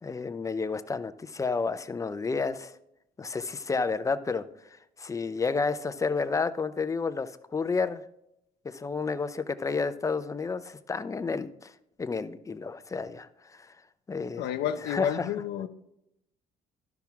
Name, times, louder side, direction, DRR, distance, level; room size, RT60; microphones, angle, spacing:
voice 1, 0.0-2.8 3.2-4.5 5.0-8.0 8.6-11.7 12.0-13.8 14.1-14.5 14.8-15.3, left 4 dB, 20° left, 0.5 m, -31 dB
voice 2, 14.4-15.7, left 10 dB, 80° left, 0.7 m, -30 dB
12.0 x 5.9 x 3.6 m
cardioid pair, 110°, 17 cm